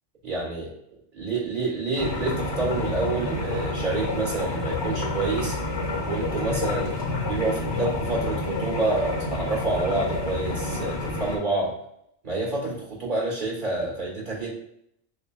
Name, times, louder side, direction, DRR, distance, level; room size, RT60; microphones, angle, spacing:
voice 1, 0.2-0.7 1.1-5.5 6.0-7.0 7.2-11.7 12.2-14.5, right 2 dB, 45° right, -3 dB, 1.4 m, -28 dB
sound 1, 2.0-11.4, left 2 dB, 30° left, 0.5 m, -29 dB
6.7 x 2.2 x 2.2 m, 0.74 s
omnidirectional pair, 1.2 m